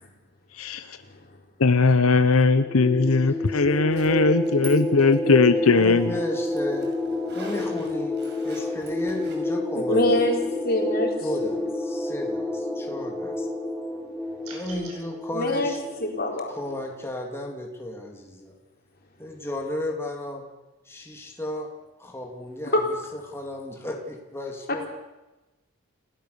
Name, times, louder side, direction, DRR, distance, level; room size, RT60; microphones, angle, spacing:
voice 1, 1.6-6.1, left 3 dB, 75° left, 11 dB, 0.9 m, -19 dB
sound 1, 2.5-16.8, left 2 dB, 5° right, 2.4 m, -29 dB
voice 2, 3.3-3.6 5.8-6.9 7.3-10.0 11.2-13.5 14.5-15.8 16.5-18.5 19.2-20.4 20.8-21.7 22.0-24.9, left 1 dB, 10° left, 1 dB, 2.8 m, -34 dB
Zipper (clothing), 3.9-4.7 5.0-9.4, right 4 dB, 50° right, 6.4 m, -45 dB
voice 3, 9.8-10.4 10.6-11.1 11.4-11.6 15.3-15.7 16.0-16.5 22.7-22.8, left 1 dB, 40° left, 1 dB, 4.2 m, -24 dB
sound 2, 14.4-15.0, right 3 dB, 85° right, 7.0 m, -43 dB
29.0 x 17.0 x 6.9 m, 1.1 s
head